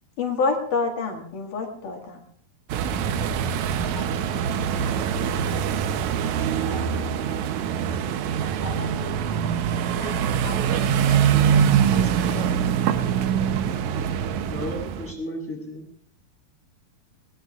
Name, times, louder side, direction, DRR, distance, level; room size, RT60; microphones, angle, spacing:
voice 1, 0.2-2.2, left 4 dB, 70° left, 1 dB, 3.3 m, -27 dB
sound 1, 2.7-15.1, right 8 dB, 70° right, 1.9 m, -24 dB
voice 2, 3.8-4.4 7.7-11.8, right 1 dB, 40° right, 0 dB, 2.1 m, -41 dB
voice 3, 11.9-13.7 14.5-15.9, left 1 dB, 5° left, -3 dB, 6.5 m, -36 dB
21.5 x 20.0 x 2.4 m, 0.62 s
omnidirectional pair, 4.0 m